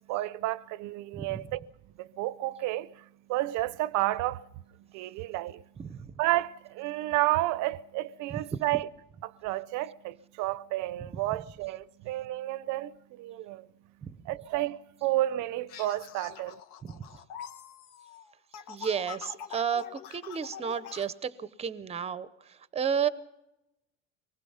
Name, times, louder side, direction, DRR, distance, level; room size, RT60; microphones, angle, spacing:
voice 1, 0.1-1.7 2.0-4.5 4.8-5.6 6.2-8.9 9.2-13.7 14.3-16.6, right 16 dB, 55° right, 0.6 m, -31 dB
voice 2, 5.8-6.1 8.3-8.4 14.0-14.1 16.8-17.0 18.7-22.3 22.7-23.1, right 7 dB, 20° right, 0.7 m, -32 dB
sound 1, 15.7-21.1, left 9 dB, 70° left, 1.5 m, -45 dB
24.5 x 19.5 x 5.6 m
cardioid pair, 150°, 34 cm